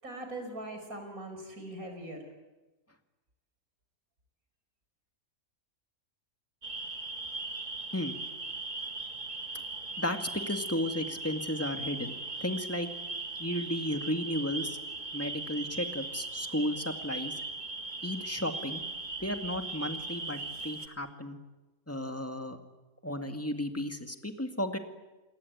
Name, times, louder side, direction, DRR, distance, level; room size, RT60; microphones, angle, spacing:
voice 1, 0.0-2.3, right 1 dB, 75° right, 5 dB, 6.1 m, -41 dB
sound 1, 6.6-20.9, right 3 dB, 30° right, 2.0 m, -39 dB
voice 2, 10.0-12.9 13.4-14.8 15.1-17.3 18.0-18.8 19.2-21.4 21.9-22.6 23.0-24.8, left 1 dB, 10° left, 6 dB, 2.1 m, -34 dB
28.5 x 20.5 x 9.4 m, 1.1 s
omnidirectional pair, 1.5 m